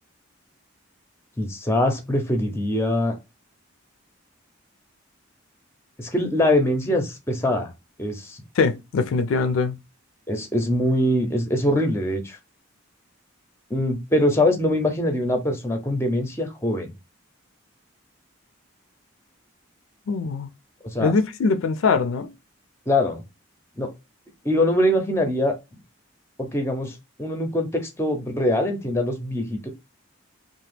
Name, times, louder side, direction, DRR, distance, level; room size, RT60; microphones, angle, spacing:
voice 1, 1.4-3.2 6.0-7.7 8.0-8.4 10.3-12.4 13.7-16.9 20.9-21.1 22.9-23.2 23.8-23.9 24.4-25.5 26.4-29.7, left 1 dB, 10° left, 0.5 m, -23 dB
voice 2, 8.6-9.8 20.1-20.5 21.0-22.3, left 4 dB, 75° left, 0.4 m, -22 dB
2.8 x 2.1 x 3.2 m
head